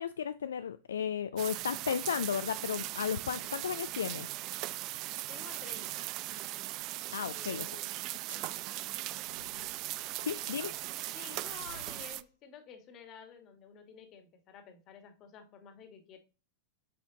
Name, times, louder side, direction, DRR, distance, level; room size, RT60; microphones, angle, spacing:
voice 1, 0.0-4.3 7.1-7.7 10.2-10.7, left 8 dB, 65° left, 12 dB, 0.3 m, -34 dB
sound 1, 1.4-12.2, right 17 dB, 40° right, 0.3 m, -39 dB
voice 2, 5.3-6.1 7.2-7.9 11.1-16.2, left 7 dB, 35° left, 7 dB, 1.5 m, -51 dB
sound 2, 8.1-12.3, left 1 dB, 90° right, 0.8 m, -57 dB
7.7 x 5.0 x 3.9 m, 0.33 s
figure-of-eight pair, 90°, 0 cm